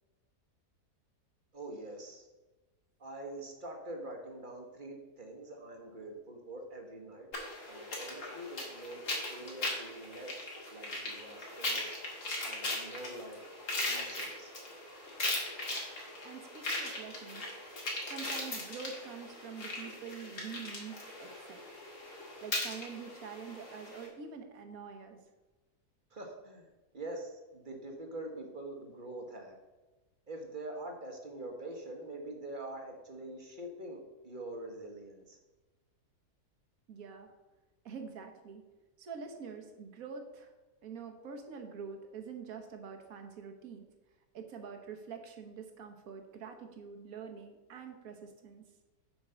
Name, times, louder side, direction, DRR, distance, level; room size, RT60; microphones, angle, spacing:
voice 1, 1.5-2.3 3.0-7.3 7.7-10.4 10.7-11.9 12.4-13.4 13.8-14.5 26.1-26.7 26.9-29.6 30.3-35.4, right 1 dB, 35° right, 2 dB, 1.1 m, -45 dB
sound 1, 7.3-24.1, left 2 dB, 55° left, 2.2 m, -39 dB
voice 2, 16.2-17.4 18.1-21.6 22.4-25.2 36.9-37.3 37.8-38.6 39.0-40.5 40.8-43.9 44.3-48.6, right 6 dB, 65° right, 5 dB, 1.5 m, -46 dB
7.1 x 4.7 x 6.8 m, 1.2 s
omnidirectional pair, 1.7 m